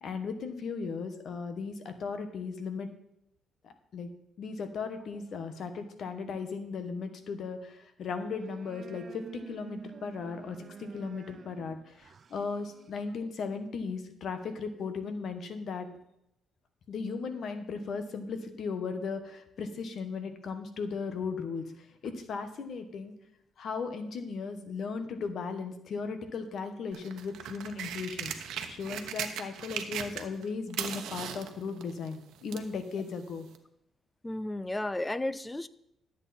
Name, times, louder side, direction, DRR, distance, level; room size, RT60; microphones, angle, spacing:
voice 1, 0.0-2.9 3.6-4.1 4.4-15.9 16.9-23.1 23.6-28.3 28.7-33.5, left 5 dB, 60° left, 8 dB, 1.3 m, -37 dB
sound 1, 8.0-13.3, right 6 dB, 45° right, 0.5 m, -49 dB
sound 2, 26.9-30.4 30.7-32.7 33.5-33.6, right 9 dB, 85° right, 1.0 m, -38 dB
voice 2, 34.2-35.7, left 1 dB, 15° left, 16 dB, 0.5 m, -33 dB
12.5 x 8.1 x 4.3 m, 0.80 s
cardioid pair, 90°, 0 cm